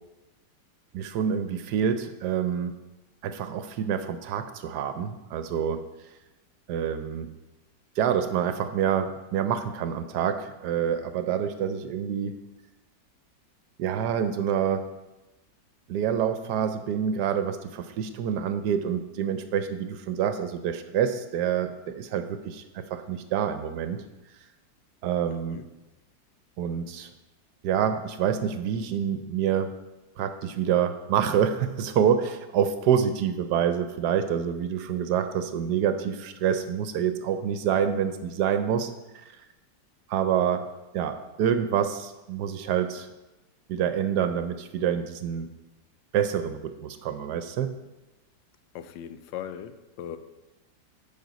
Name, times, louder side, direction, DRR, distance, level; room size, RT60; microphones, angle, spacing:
voice 1, 0.9-2.7 3.2-5.8 6.7-7.3 8.0-12.4 13.8-14.9 15.9-24.0 25.0-25.6 26.6-27.1 27.6-29.7 30.2-38.9 39.1-39.3 40.1-40.6 40.9-43.1 43.7-45.5 46.1-47.7, right 8 dB, 75° right, 9 dB, 1.1 m, -27 dB
voice 2, 25.3-25.7 48.7-50.2, left 9 dB, 85° left, 11 dB, 1.3 m, -39 dB
9.4 x 5.2 x 4.0 m, 1.0 s
omnidirectional pair, 2.0 m